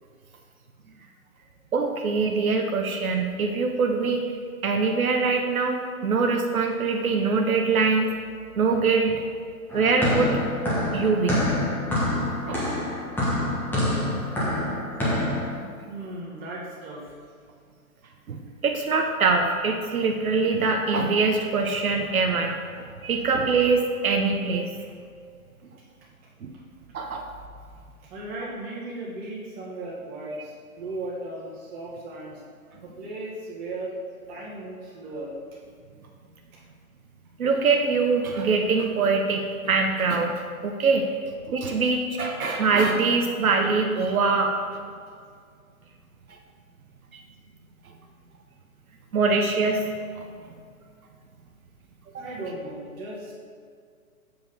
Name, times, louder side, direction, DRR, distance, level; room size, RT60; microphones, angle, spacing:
voice 1, 1.7-4.2 4.6-8.1 8.6-9.2 9.7-10.4 10.9-11.4 12.1-12.2 12.5-12.6 18.3-22.5 22.8-24.7 26.4-26.5 26.9-27.2 37.4-41.1 41.5-44.5 49.1-49.9 50.2-50.3 52.1-52.2, right 4 dB, 75° right, 2 dB, 1.0 m, -23 dB
sound 1, 9.7-15.5, left 1 dB, 5° left, 1.4 m, -26 dB
voice 2, 15.9-17.1 28.0-32.4 32.8-33.9 34.3-35.3 36.5-36.6 52.2-53.3, right 2 dB, 20° right, -5 dB, 1.8 m, -36 dB
7.8 x 4.9 x 5.4 m, 2.1 s
hypercardioid pair, 145°, 44 cm